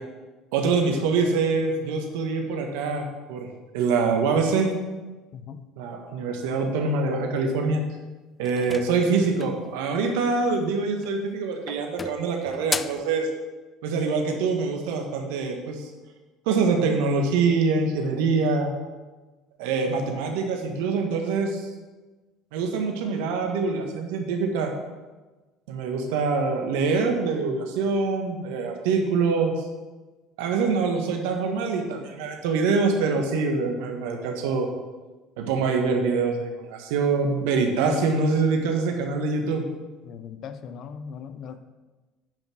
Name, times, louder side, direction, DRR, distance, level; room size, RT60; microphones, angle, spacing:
voice 1, 0.5-3.5 3.7-4.7 5.8-7.8 8.4-13.3 13.8-15.9 16.4-18.7 19.6-21.7 22.5-24.7 25.7-29.6 30.4-34.7 35.4-39.6, right 4 dB, 75° right, 3 dB, 1.5 m, -24 dB
voice 2, 5.3-5.7 40.0-41.6, left 7 dB, 55° left, 11 dB, 0.7 m, -39 dB
sound 1, 8.4-9.7 10.9-11.3 11.7-13.1, left 4 dB, 25° left, 0.4 m, -34 dB
9.0 x 5.9 x 6.1 m, 1.2 s
hypercardioid pair, 70°, 0 cm